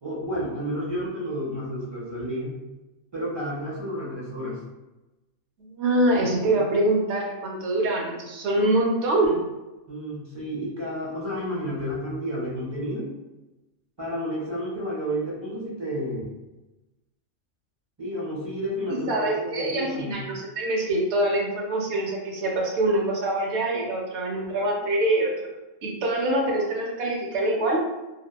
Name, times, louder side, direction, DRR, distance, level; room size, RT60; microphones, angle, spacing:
voice 1, 0.0-2.5 3.1-4.6 6.5-6.6 9.9-13.1 14.0-16.3 18.0-20.2, equal, 40° right, -6 dB, 0.4 m, -31 dB
voice 2, 5.6-9.4 18.9-25.3 25.8-27.8, right 1 dB, 70° right, -1 dB, 0.9 m, -24 dB
2.9 x 2.1 x 2.2 m, 1.0 s
omnidirectional pair, 1.3 m